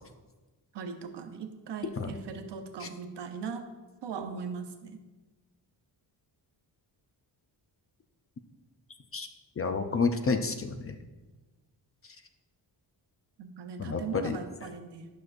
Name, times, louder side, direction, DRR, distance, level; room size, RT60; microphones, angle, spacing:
voice 1, 0.7-3.6 4.0-5.0 13.4-15.1, right 6 dB, 70° right, 6 dB, 0.9 m, -39 dB
voice 2, 9.6-11.0 13.8-14.4, left 4 dB, 35° left, 7 dB, 0.4 m, -29 dB
11.5 x 6.2 x 2.6 m, 1.2 s
wide cardioid pair, 140°, 44 cm